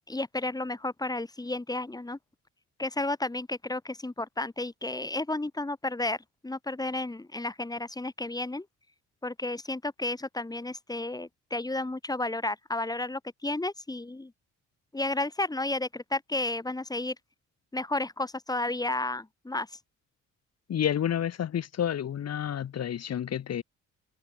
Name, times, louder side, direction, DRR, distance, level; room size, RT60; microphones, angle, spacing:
voice 1, 0.1-2.2 2.8-6.2 6.4-8.7 9.2-14.3 14.9-17.2 17.7-19.7, left 2 dB, 10° left, 1.9 m, -32 dB
voice 2, 20.7-23.6, left 9 dB, 55° left, 1.9 m, -30 dB
cardioid pair, 90°, 30 cm